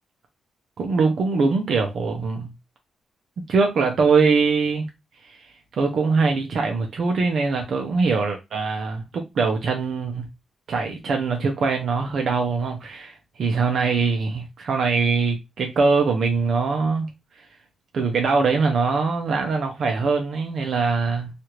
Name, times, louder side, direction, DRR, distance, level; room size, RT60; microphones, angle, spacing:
voice 1, 0.8-2.5 3.5-4.8 5.2-5.4 5.8-10.3 10.7-17.1 17.9-21.3, right 4 dB, 60° right, 0.6 m, -22 dB
3.2 x 2.5 x 2.8 m
cardioid pair, 120°, 0 cm